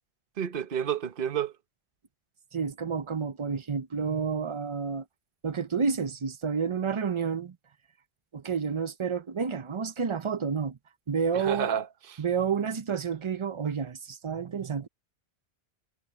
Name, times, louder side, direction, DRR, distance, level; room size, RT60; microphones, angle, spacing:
voice 1, 0.4-1.5 11.3-12.2, right 8 dB, 55° right, 1.1 m, -30 dB
voice 2, 2.5-5.0 5.4-7.6 8.3-10.8 11.1-11.8 12.2-14.9, right 6 dB, 35° right, 0.5 m, -30 dB
omnidirectional pair, 1.1 m